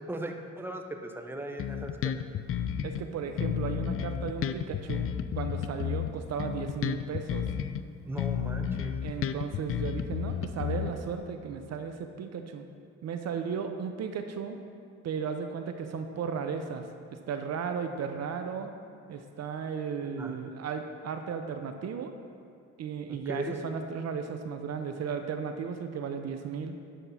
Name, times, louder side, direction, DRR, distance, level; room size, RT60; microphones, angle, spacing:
voice 1, 0.1-2.2 8.1-9.0 20.2-20.4 23.1-23.6, right 1 dB, 5° right, 4 dB, 0.7 m, -38 dB
Bass guitar, 1.6-3.0 3.4-7.8 8.2-11.2, left 9 dB, 45° left, 0.4 m, -32 dB
voice 2, 2.8-7.5 9.0-12.7 13.0-14.6 15.0-18.7 19.1-22.1 22.8-26.8, right 6 dB, 60° right, 6 dB, 0.6 m, -35 dB
11.0 x 3.7 x 5.6 m, 2.4 s
cardioid pair, 90°, 30 cm